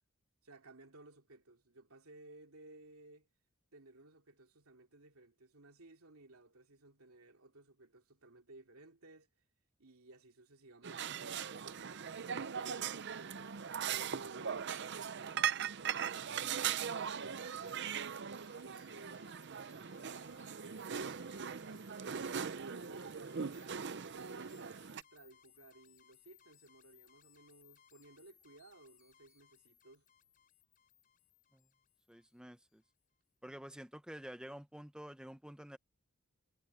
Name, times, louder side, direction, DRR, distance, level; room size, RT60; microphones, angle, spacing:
voice 1, 0.4-3.3 3.7-9.3 9.8-12.0 12.3-13.2 14.0-16.2 16.6-22.0 22.8-30.0, right 2 dB, 85° right, 2.8 m, -59 dB
sound 1, 10.8-25.0, right 7 dB, 55° right, 0.6 m, -40 dB
sound 2, 16.9-32.7, left 10 dB, 40° left, 5.5 m, -66 dB
voice 2, 32.1-32.8 33.4-35.8, equal, 5° right, 0.9 m, -49 dB
head